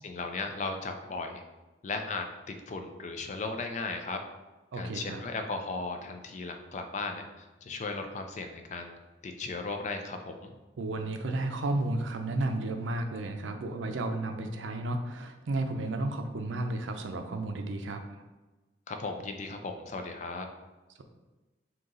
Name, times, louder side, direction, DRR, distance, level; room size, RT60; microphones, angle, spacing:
voice 1, 0.0-1.4 1.8-4.2 4.7-8.9 9.2-10.5 18.9-20.5, left 3 dB, 40° left, 5 dB, 0.4 m, -36 dB
voice 2, 4.7-5.2 10.8-18.0, right 2 dB, 85° right, 6 dB, 0.5 m, -32 dB
3.9 x 2.8 x 3.7 m, 1.2 s
head